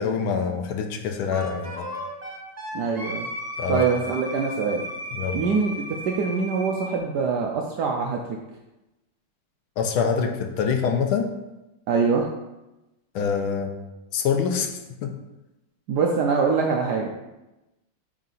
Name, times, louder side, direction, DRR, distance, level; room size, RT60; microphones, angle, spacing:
voice 1, 0.0-1.9 3.6-3.8 5.1-5.4 9.8-11.3 13.1-13.8 14.1-14.7 15.0-15.1, left 6 dB, 75° left, 4 dB, 1.5 m, -25 dB
Wind instrument woodwind instrument, 1.3-7.0, equal, 20° right, 1.5 m, -35 dB
voice 2, 2.7-3.3 3.7-4.8 5.3-5.7 6.0-8.4 11.9-12.3 15.9-17.1, right 5 dB, 75° right, 1 dB, 0.9 m, -24 dB
8.4 x 3.7 x 4.1 m, 0.99 s
omnidirectional pair, 2.4 m